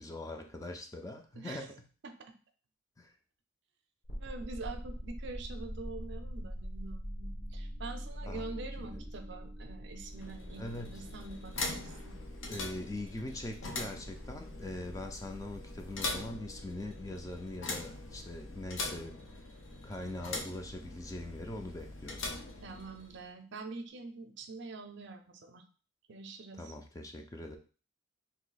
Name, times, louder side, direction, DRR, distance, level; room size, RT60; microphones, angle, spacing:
voice 1, 0.0-1.8 3.0-3.1 8.2-9.1 10.6-11.0 12.5-19.2 19.8-22.2 26.5-27.6, left 1 dB, 15° left, 4 dB, 0.4 m, -42 dB
voice 2, 1.4-1.7 2.0-2.3 4.2-12.2 22.6-25.6 26.1-26.7, right 3 dB, 65° right, 7 dB, 0.5 m, -45 dB
sound 1, 4.0-21.0, equal, 60° left, 1.0 m, -45 dB
sound 2, 10.0-23.3, left 2 dB, 80° left, 0.7 m, -42 dB
2.8 x 2.7 x 3.9 m, 0.37 s
head